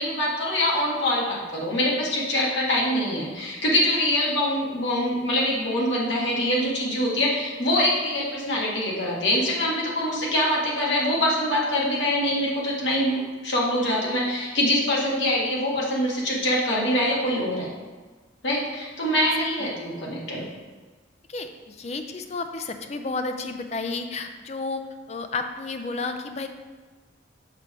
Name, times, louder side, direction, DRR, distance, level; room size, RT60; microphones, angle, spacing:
voice 1, 0.0-17.7 18.4-20.4, left 1 dB, 70° left, -4 dB, 1.7 m, -24 dB
voice 2, 21.3-26.5, left 3 dB, 35° left, 7 dB, 0.4 m, -32 dB
6.7 x 3.2 x 6.0 m, 1.4 s
head